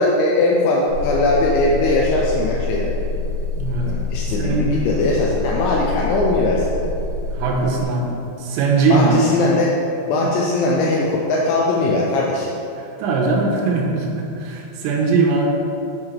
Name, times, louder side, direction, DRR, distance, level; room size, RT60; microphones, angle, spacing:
voice 1, 0.0-2.9 3.8-6.9 8.9-9.7 10.1-12.5, left 2 dB, 85° left, -3 dB, 2.7 m, -20 dB
sound 1, 0.9-7.8, left 3 dB, 65° left, 3.3 m, -26 dB
voice 2, 4.3-4.7 7.3-9.2 12.8-15.5, right 4 dB, 85° right, -1 dB, 3.4 m, -20 dB
8.5 x 3.9 x 4.4 m, 2.6 s
omnidirectional pair, 5.9 m